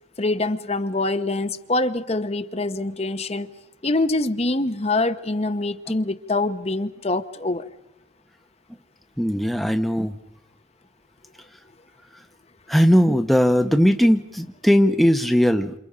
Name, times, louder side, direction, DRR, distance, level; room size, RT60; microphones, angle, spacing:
voice 1, 0.2-3.5 3.8-7.6, left 2 dB, 30° left, 10 dB, 0.9 m, -24 dB
voice 2, 9.2-10.1 12.7-15.7, equal, ahead, 6 dB, 0.9 m, -18 dB
29.0 x 28.0 x 5.0 m, 0.87 s
head